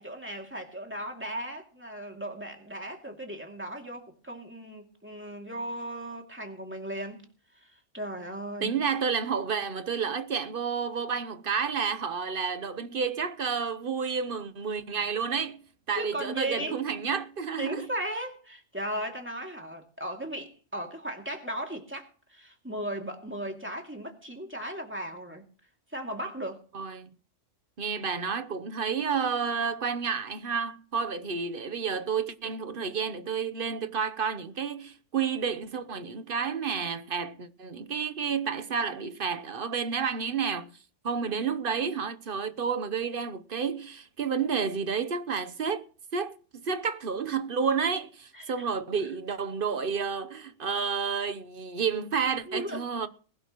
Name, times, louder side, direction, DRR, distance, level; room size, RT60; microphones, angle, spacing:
voice 1, 0.0-7.3 7.6-8.8 15.9-16.8 17.6-25.4 25.9-26.6 48.3-48.7 52.5-52.8, right 1 dB, 10° right, 2.5 m, -36 dB
voice 2, 8.6-15.6 15.9-17.9 26.7-27.1 27.8-40.7 41.0-45.8 46.1-53.1, right 6 dB, 50° right, 1.0 m, -30 dB
20.5 x 12.0 x 3.0 m
omnidirectional pair, 1.3 m